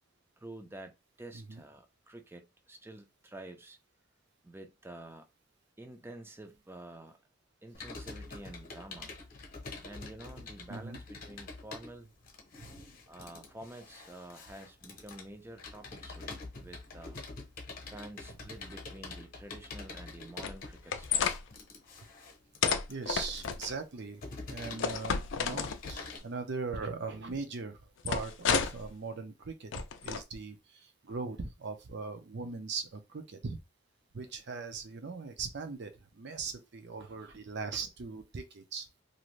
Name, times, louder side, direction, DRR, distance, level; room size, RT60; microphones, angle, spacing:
voice 1, 0.4-3.8 4.4-5.3 5.8-7.2 7.6-9.1 9.8-12.1 13.1-17.2 17.9-21.3, right 1 dB, 10° right, 0.4 m, -49 dB
Computer keyboard, 7.7-26.2, left 3 dB, 45° left, 0.9 m, -46 dB
sound 1, 20.4-21.4 22.6-23.7 24.8-26.1 28.1-28.9 29.7-30.2, left 6 dB, 60° left, 0.4 m, -31 dB
voice 2, 22.9-33.6 34.1-38.9, right 4 dB, 60° right, 0.6 m, -40 dB
2.6 x 2.6 x 3.1 m
head